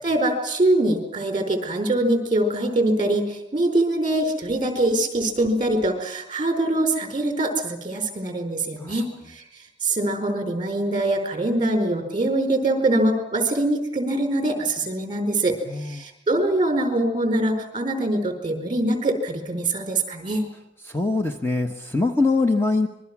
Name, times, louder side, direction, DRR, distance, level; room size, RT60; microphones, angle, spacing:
voice 1, 0.0-9.4 9.8-20.5, right 1 dB, 25° right, 6 dB, 4.7 m, -23 dB
voice 2, 15.7-16.0 20.9-22.9, left 3 dB, 15° left, 4 dB, 1.2 m, -23 dB
26.0 x 22.5 x 6.1 m, 0.88 s
head